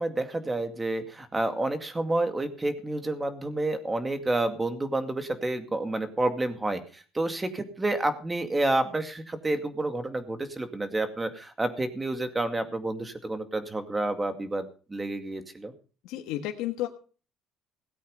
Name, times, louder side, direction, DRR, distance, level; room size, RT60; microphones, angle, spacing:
voice 1, 0.0-15.7, right 2 dB, 15° right, 7 dB, 2.2 m, -29 dB
voice 2, 16.0-16.9, left 13 dB, 90° left, 3 dB, 1.5 m, -31 dB
17.5 x 8.5 x 5.5 m, 0.39 s
cardioid pair, 115°, 0 cm